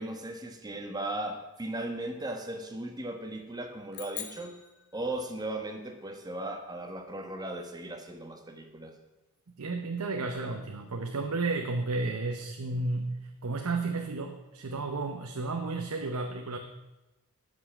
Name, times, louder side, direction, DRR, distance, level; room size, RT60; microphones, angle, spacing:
voice 1, 0.0-4.6 4.9-8.9, right 1 dB, 20° right, 5 dB, 1.1 m, -37 dB
sound 1, 3.9-5.6, left 10 dB, 50° left, 1.1 m, -44 dB
voice 2, 9.6-16.6, right 3 dB, 85° right, 4 dB, 0.8 m, -32 dB
13.0 x 5.5 x 6.0 m, 1.0 s
head